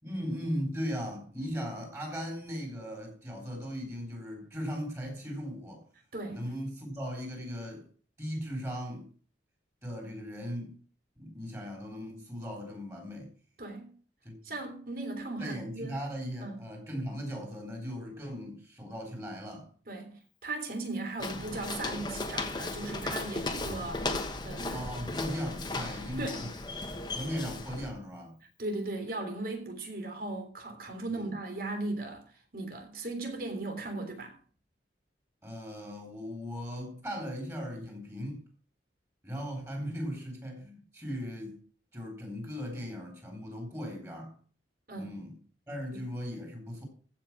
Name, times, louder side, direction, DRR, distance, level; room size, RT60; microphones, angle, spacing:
voice 1, 0.0-5.8 6.3-7.9 8.2-9.1 9.8-10.7 11.2-13.3 14.2-14.4 15.4-19.7 24.7-26.5 27.0-28.4 31.1-31.3 35.4-38.4 39.2-41.6 41.9-44.3 45.0-45.3 45.7-46.9, equal, 15° right, 3.7 m, -38 dB
voice 2, 13.6-13.9 14.4-16.0 16.4-16.6 19.9-24.0 24.4-24.9 26.2-26.5 28.6-32.3 32.5-34.3 44.9-45.2 45.9-46.1, right 2 dB, 50° right, 3.4 m, -37 dB
Walk footsteps, 21.2-27.9, left 2 dB, 25° left, 1.2 m, -36 dB
15.0 x 5.8 x 6.0 m
head